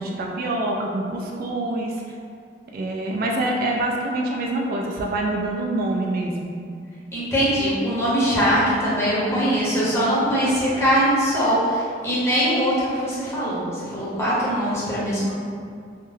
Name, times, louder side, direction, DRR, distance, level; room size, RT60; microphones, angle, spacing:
voice 1, 0.0-1.9 2.7-6.5, right 2 dB, 55° right, -1 dB, 0.3 m, -25 dB
voice 2, 7.1-15.4, equal, 15° left, -10 dB, 0.9 m, -22 dB
3.6 x 2.2 x 2.6 m, 2.2 s
head